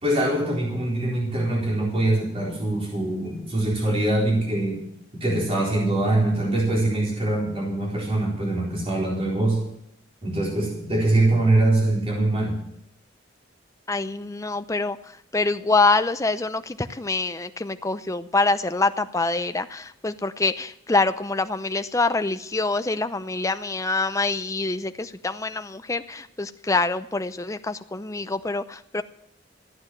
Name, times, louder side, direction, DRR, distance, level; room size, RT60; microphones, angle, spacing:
voice 1, 0.0-4.8 5.1-9.6 10.2-12.6, right 2 dB, 30° right, -3 dB, 4.1 m, -23 dB
voice 2, 13.9-29.0, left 3 dB, 15° left, 10 dB, 0.6 m, -25 dB
14.0 x 9.5 x 7.7 m, 0.73 s
head